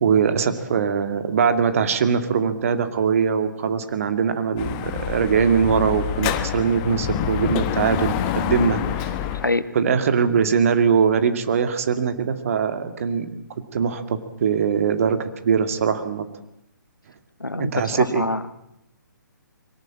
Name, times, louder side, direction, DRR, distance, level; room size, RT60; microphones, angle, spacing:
voice 1, 0.0-9.2 9.7-13.4 13.7-16.2 17.5-18.3, right 6 dB, 45° right, 9 dB, 2.2 m, -22 dB
Dog / Motorcycle, 4.6-9.5, left 10 dB, 25° left, 1.1 m, -26 dB
voice 2, 17.4-18.5, left 2 dB, 80° left, 13 dB, 1.4 m, -25 dB
22.5 x 18.5 x 8.8 m, 0.80 s
figure-of-eight pair, 135°, 11 cm